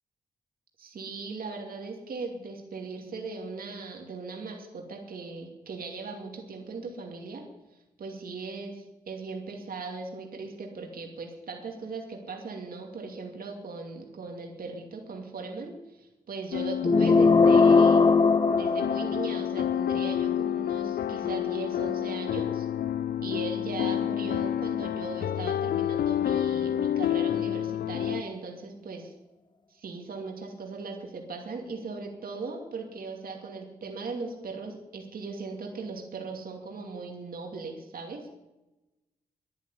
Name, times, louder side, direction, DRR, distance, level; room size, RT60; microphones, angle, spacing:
voice 1, 0.8-7.5 8.0-18.1 18.5-22.7 23.2-29.1 29.7-38.3, right 4 dB, 75° right, 1 dB, 2.6 m, -38 dB
sound 1, 16.5-28.2, left 10 dB, 90° left, 0.4 m, -29 dB
sound 2, 16.8-19.5, left 4 dB, 30° left, 0.6 m, -20 dB
11.5 x 11.0 x 9.9 m, 1.0 s
cardioid pair, 90°, 15 cm